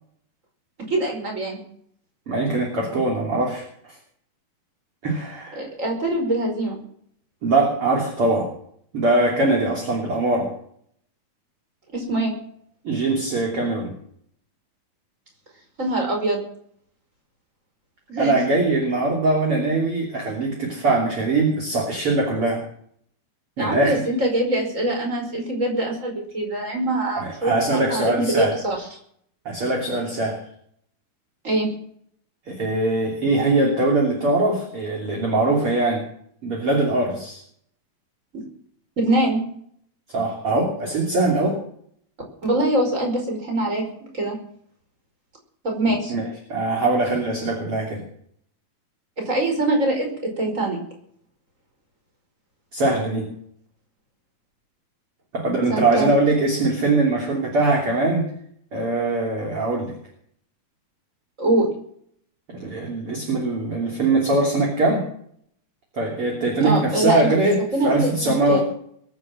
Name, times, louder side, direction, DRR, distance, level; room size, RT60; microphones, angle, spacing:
voice 1, 0.9-1.6 5.5-6.8 11.9-12.3 15.8-16.4 18.1-18.3 23.6-28.8 31.4-31.7 38.3-38.4 39.0-39.4 42.4-43.9 44.1-44.4 45.6-46.1 49.2-50.8 55.7-56.1 61.4-61.7 66.6-67.4 67.7-68.6, right 1 dB, 20° right, 1 dB, 5.1 m, -23 dB
voice 2, 2.3-3.6 5.0-5.6 7.4-8.5 8.9-10.5 12.8-13.9 18.2-22.6 23.6-24.0 27.2-28.5 29.5-30.4 32.5-36.0 36.4-37.4 40.1-41.6 46.1-48.0 52.7-53.3 55.3-58.3 58.7-59.9 62.5-65.1 65.9-68.6, right 2 dB, 40° right, 0 dB, 3.6 m, -22 dB
22.0 x 8.3 x 7.5 m, 0.65 s
omnidirectional pair, 4.3 m